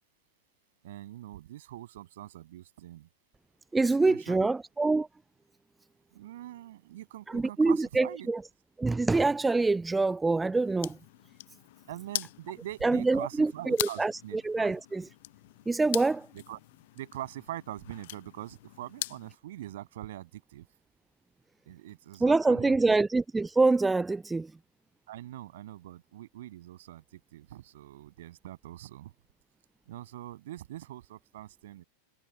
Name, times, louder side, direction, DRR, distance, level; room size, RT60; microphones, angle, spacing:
voice 1, 0.8-3.1 4.1-4.5 6.1-8.3 11.9-14.7 16.3-16.6 16.9-20.7 21.7-22.8 25.1-29.1 29.9-31.8, right 14 dB, 55° right, 7.3 m, -43 dB
voice 2, 3.7-5.1 7.3-8.4 8.8-11.0 12.8-15.1 15.7-16.3 22.2-24.5, right 3 dB, 10° right, 0.4 m, -25 dB
sound 1, 10.5-19.4, left 18 dB, 50° left, 0.9 m, -42 dB
figure-of-eight pair, 90°, 0 cm